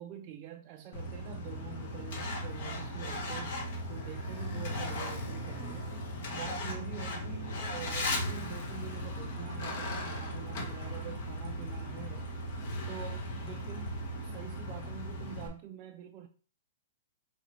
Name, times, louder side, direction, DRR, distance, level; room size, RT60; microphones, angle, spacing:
voice 1, 0.0-6.0 6.3-12.3 12.8-14.0 14.2-16.3, right 11 dB, 35° right, 0.4 m, -46 dB
Truck, 0.9-15.5, left 1 dB, 55° left, 1.1 m, -37 dB
4.8 x 3.1 x 3.0 m
hypercardioid pair, 140°, 0 cm